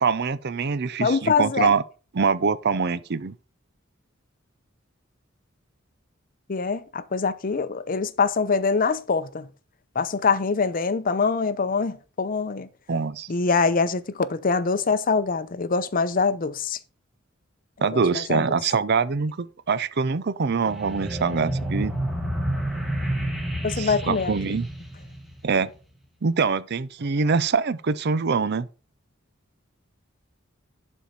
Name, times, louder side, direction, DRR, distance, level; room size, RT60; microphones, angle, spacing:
voice 1, 0.0-1.8 2.1-3.3 12.9-13.3 17.8-21.9 23.8-24.7 25.4-25.7 26.2-28.7, right 5 dB, 55° right, 0.5 m, -24 dB
voice 2, 1.0-1.7 6.5-9.5 9.9-12.7 13.3-16.8 17.8-18.4 23.6-24.6, left 4 dB, 45° left, 0.6 m, -24 dB
sound 1, 20.7-25.6, right 1 dB, ahead, 1.8 m, -29 dB
11.5 x 4.5 x 5.2 m
head